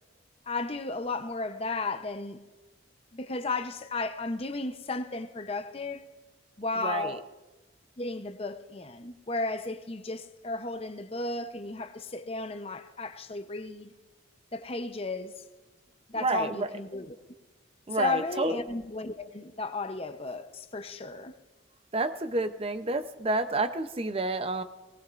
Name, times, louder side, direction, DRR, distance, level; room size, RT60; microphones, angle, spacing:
voice 1, 0.5-2.4 3.1-6.0 6.6-7.2 8.0-13.9 14.5-15.4 16.1-17.2 18.0-21.3, left 3 dB, 30° left, 0.8 m, -34 dB
voice 2, 6.8-7.2 16.2-16.7 17.9-18.6 21.9-24.6, right 2 dB, 30° right, 0.6 m, -29 dB
19.5 x 19.5 x 2.5 m
head